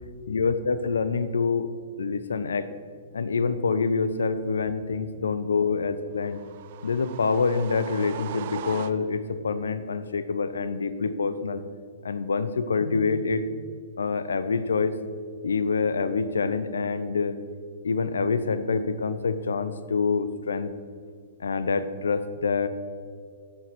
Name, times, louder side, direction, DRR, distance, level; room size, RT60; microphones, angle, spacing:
voice 1, 0.3-1.7 2.0-2.7 3.1-6.4 6.8-11.6 12.0-13.4 14.0-14.9 15.4-17.4 17.8-20.7 21.4-22.7, left 4 dB, 75° left, 13 dB, 0.6 m, -26 dB
sound 1, 6.2-9.4, right 12 dB, 50° right, 0.3 m, -39 dB
11.0 x 6.6 x 4.4 m, 2.1 s
figure-of-eight pair, 110°, 0 cm